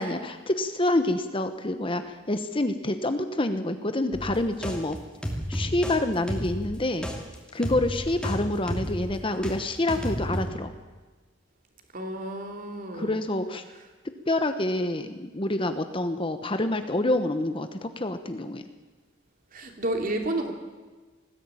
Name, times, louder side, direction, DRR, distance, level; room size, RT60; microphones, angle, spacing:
voice 1, 0.0-5.0 5.5-7.1 7.5-10.7 13.0-13.6 14.3-18.6, left 1 dB, 25° left, 9 dB, 1.0 m, -27 dB
sound 1, 4.1-9.5 9.9-10.4, equal, 5° left, 2.8 m, -32 dB
voice 2, 11.9-13.1 19.5-20.5, right 1 dB, 40° right, 3 dB, 2.7 m, -31 dB
19.5 x 15.0 x 8.9 m, 1.3 s
head